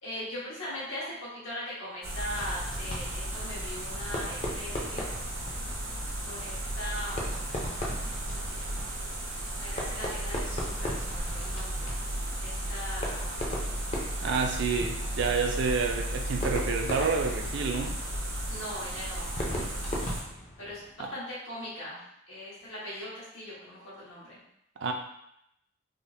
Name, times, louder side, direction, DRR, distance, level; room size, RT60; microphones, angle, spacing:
voice 1, 0.0-5.1 6.2-7.6 8.0-8.8 9.6-11.9 12.4-13.5 18.5-19.3 20.6-24.4, left 1 dB, 80° left, -8 dB, 1.3 m, -40 dB
sound 1, 2.0-20.2, right 1 dB, 85° right, 0.7 m, -34 dB
Fireworks, 2.3-21.1, left 1 dB, 30° left, 0.5 m, -40 dB
voice 2, 14.2-17.9 24.8-24.9, right 5 dB, 60° right, 3 dB, 0.4 m, -29 dB
3.5 x 2.1 x 2.6 m, 0.78 s
head